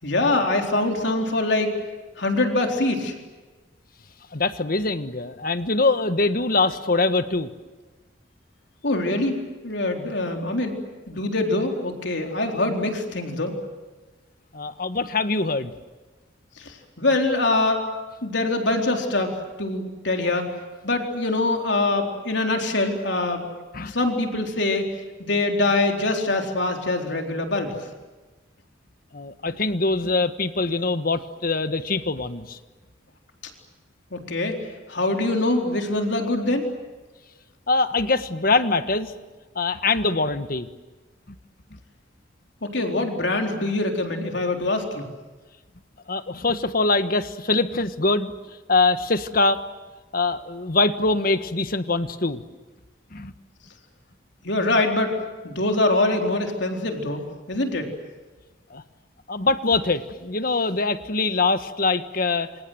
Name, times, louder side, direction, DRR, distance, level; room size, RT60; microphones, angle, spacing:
voice 1, 0.0-1.7 2.2-3.1 8.8-10.7 11.1-13.5 16.6-17.8 18.2-20.5 20.8-23.5 23.8-24.9 25.2-27.7 34.1-34.6 34.9-36.6 42.6-45.1 54.4-55.1 55.4-57.9, left 2 dB, 65° left, 3 dB, 4.1 m, -24 dB
voice 2, 4.3-7.5 14.5-15.7 23.7-23.9 29.1-32.6 37.7-39.1 39.5-40.7 46.1-48.3 48.7-49.6 50.1-52.4 53.1-53.3 58.7-58.8 59.3-62.6, left 3 dB, 50° left, 11 dB, 1.4 m, -23 dB
27.5 x 27.0 x 7.9 m, 1.2 s
head